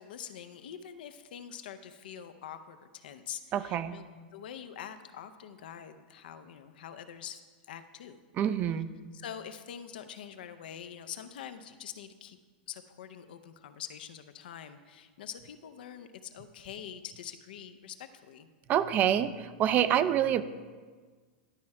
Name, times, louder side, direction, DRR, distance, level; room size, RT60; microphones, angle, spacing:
voice 1, 0.0-4.1 4.3-7.4 7.7-8.2 9.1-12.4 12.7-18.5, left 9 dB, 80° left, 10 dB, 0.6 m, -45 dB
voice 2, 3.5-4.0 8.4-8.9 18.7-20.4, right 10 dB, 35° right, 13 dB, 0.4 m, -26 dB
11.5 x 4.3 x 4.7 m, 1.5 s
supercardioid pair, 135°, 5 cm